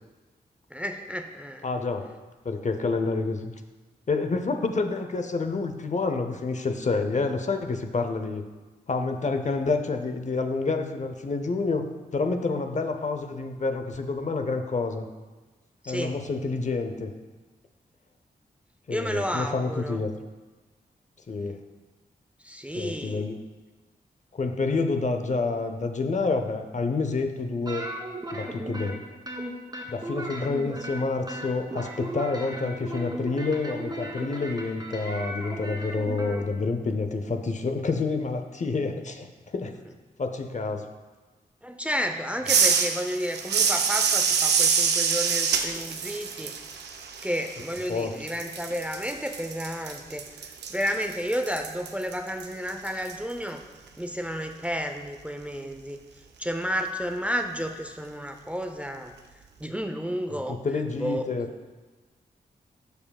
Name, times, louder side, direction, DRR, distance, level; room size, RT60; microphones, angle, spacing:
voice 1, 0.7-1.7 15.8-16.2 18.9-20.0 22.4-23.3 41.6-46.5 47.2-53.6 54.0-56.0 56.4-59.1 59.6-60.6 61.0-61.3, equal, 5° right, 5 dB, 0.6 m, -31 dB
voice 2, 1.6-2.1 2.4-3.5 4.1-8.4 8.9-11.9 12.1-15.1 15.9-17.1 18.9-20.1 21.3-21.6 22.8-23.4 24.3-27.9 28.3-29.0 29.9-39.8 40.2-40.9 47.9-48.1 60.3-61.5, left 3 dB, 45° left, 6 dB, 0.7 m, -28 dB
sound 1, 27.7-28.9 29.3-31.0 31.3-36.4, right 1 dB, 25° right, 1.7 m, -36 dB
sound 2, 42.5-48.0 48.3-53.1, right 6 dB, 90° right, 0.5 m, -26 dB
13.0 x 4.7 x 2.3 m, 1.3 s
cardioid pair, 50°, 17 cm